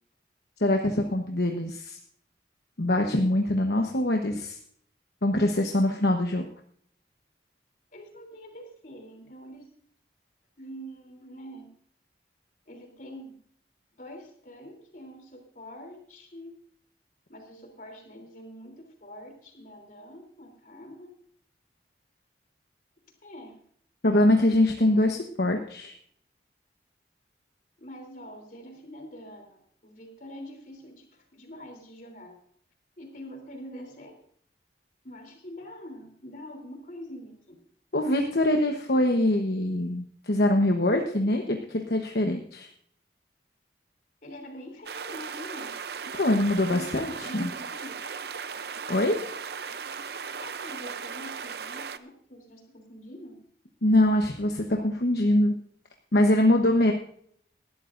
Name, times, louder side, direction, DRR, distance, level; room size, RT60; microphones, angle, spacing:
voice 1, 0.6-2.0 2.8-4.6 5.2-6.5 24.0-25.9 37.9-42.7 46.2-47.1 47.3-47.5 48.9-49.2 53.8-55.5 56.1-56.9, left 1 dB, 65° left, 3 dB, 1.1 m, -23 dB
voice 2, 7.9-9.7 10.6-11.7 12.7-13.4 14.0-16.5 17.3-21.1 23.2-23.5 27.8-32.3 33.0-34.1 35.0-37.6 44.2-45.7 46.6-47.9 50.4-53.3, equal, 45° left, 3 dB, 3.3 m, -44 dB
sound 1, 44.9-52.0, right 6 dB, 65° right, 0.6 m, -37 dB
19.0 x 12.5 x 2.6 m, 0.62 s
head